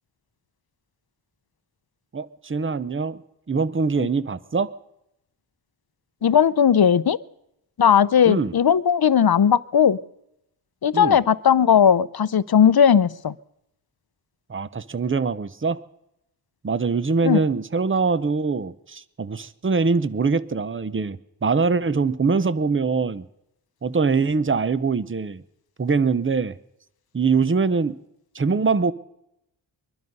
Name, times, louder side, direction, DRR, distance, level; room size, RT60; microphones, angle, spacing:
voice 1, 2.1-3.2 3.5-4.7 8.3-8.5 10.9-11.2 14.5-15.8 16.6-23.2 23.8-25.4 25.8-26.6 27.1-28.0 28.3-28.9, right 4 dB, 25° right, 0.7 m, -23 dB
voice 2, 6.2-7.2 7.8-10.0 10.8-13.3 17.2-17.4, left 8 dB, 55° left, 0.6 m, -17 dB
22.5 x 12.0 x 5.4 m
wide cardioid pair, 60°, 45 cm